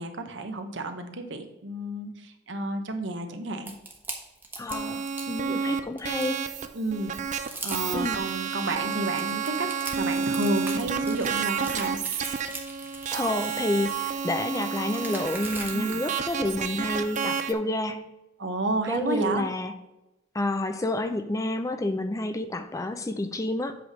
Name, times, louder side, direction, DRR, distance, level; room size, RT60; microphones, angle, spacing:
voice 1, 0.0-3.7 5.5-5.6 6.7-7.1 7.6-12.0 15.7-16.0 18.4-19.5, right 2 dB, 70° right, 6 dB, 1.0 m, -31 dB
sound 1, 3.7-5.3 5.8-6.6 7.0-7.1 7.3-8.4 8.8-16.0, right 2 dB, 10° right, 1.0 m, -40 dB
voice 2, 4.6-6.4 7.9-8.2 13.1-18.0 18.9-19.7 20.3-23.8, left 2 dB, 15° left, 9 dB, 0.4 m, -29 dB
sound 2, 4.7-17.5, right 6 dB, 40° right, 0.4 m, -30 dB
7.8 x 3.5 x 6.2 m, 0.94 s
head